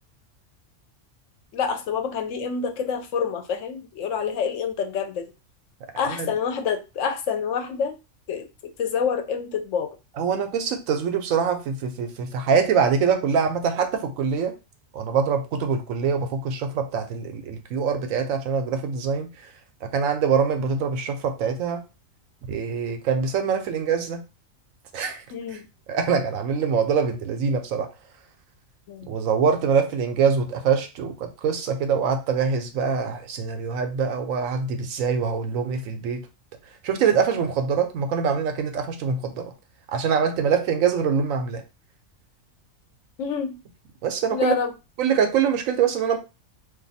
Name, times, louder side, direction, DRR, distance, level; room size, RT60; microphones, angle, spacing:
voice 1, 1.5-5.3 6.0-8.0 8.3-8.5 8.8-9.9 25.3-25.7 28.9-29.1 43.2-43.6 44.3-44.7, left 6 dB, 70° left, 0.9 m, -27 dB
voice 2, 10.2-14.5 14.9-19.3 19.8-21.8 22.5-24.2 24.9-25.2 25.9-27.9 29.1-36.2 36.8-39.5 39.9-41.6 44.0-44.5 45.0-46.2, right 6 dB, 85° right, 1.1 m, -24 dB
2.5 x 2.4 x 4.0 m
omnidirectional pair, 1.4 m